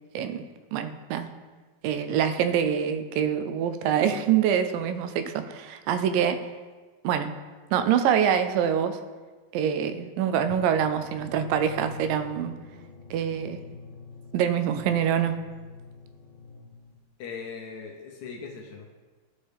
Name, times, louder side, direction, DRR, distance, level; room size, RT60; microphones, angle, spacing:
voice 1, 0.1-0.4 0.7-1.3 1.8-6.4 7.0-7.3 7.7-9.0 9.5-12.5 13.1-13.6 14.3-15.3, right 8 dB, 90° right, 9 dB, 2.3 m, -25 dB
sound 1, 10.5-17.3, left 4 dB, 90° left, 2.7 m, -44 dB
voice 2, 17.2-18.9, left 5 dB, 70° left, 0 dB, 1.9 m, -39 dB
13.0 x 5.5 x 3.4 m, 1.4 s
omnidirectional pair, 3.9 m